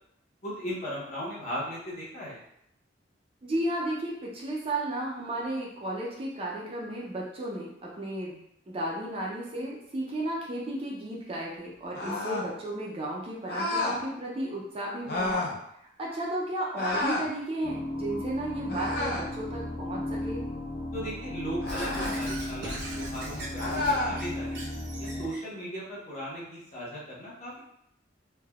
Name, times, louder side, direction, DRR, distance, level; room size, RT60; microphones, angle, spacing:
voice 1, 0.4-2.4 20.9-24.6 25.0-27.6, equal, 35° left, -7 dB, 0.9 m, -37 dB
voice 2, 3.4-15.5 16.0-20.5, right 1 dB, 30° right, -3 dB, 0.4 m, -34 dB
sound 1, 11.9-12.5 13.5-14.0 15.1-15.6 16.8-17.3 18.7-19.3 21.6-22.2 23.6-24.2, left 2 dB, 50° left, 0.5 m, -30 dB
sound 2, 17.6-25.3, left 1 dB, 70° left, 1.0 m, -35 dB
Squeak / Writing, 21.7-25.4, right 1 dB, 65° right, 0.7 m, -40 dB
3.3 x 2.2 x 2.2 m, 0.75 s
head